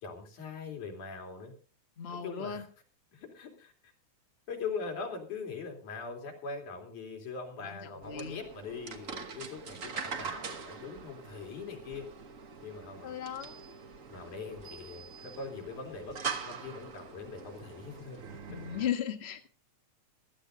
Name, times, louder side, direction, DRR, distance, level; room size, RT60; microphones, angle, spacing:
voice 1, 0.0-1.5 2.1-2.7 3.1-3.9 4.5-12.1 12.6-13.2 14.1-18.4, left 4 dB, 80° left, 3 dB, 4.3 m, -42 dB
voice 2, 2.0-2.6 7.6-8.4 13.0-13.5 18.5-19.5, left 9 dB, 40° left, 5 dB, 0.9 m, -36 dB
sound 1, 8.0-18.9, right 6 dB, 80° right, 0.7 m, -43 dB
16.5 x 13.0 x 3.8 m, 0.35 s
omnidirectional pair, 3.4 m